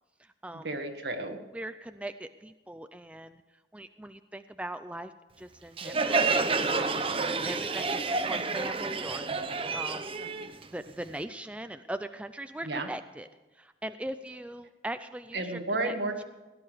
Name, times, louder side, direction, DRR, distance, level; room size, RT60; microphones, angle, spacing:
voice 1, 0.5-1.4 12.7-12.9 15.3-16.2, right 2 dB, 70° right, 4 dB, 1.7 m, -32 dB
voice 2, 1.5-3.4 3.7-5.1 5.4-6.3 6.7-6.9 7.4-10.1 10.7-13.3 13.6-16.0, right 1 dB, 5° right, 9 dB, 0.4 m, -40 dB
Crowd, 5.8-11.2, right 4 dB, 30° right, 0.9 m, -29 dB
17.5 x 10.5 x 5.0 m, 1.2 s
head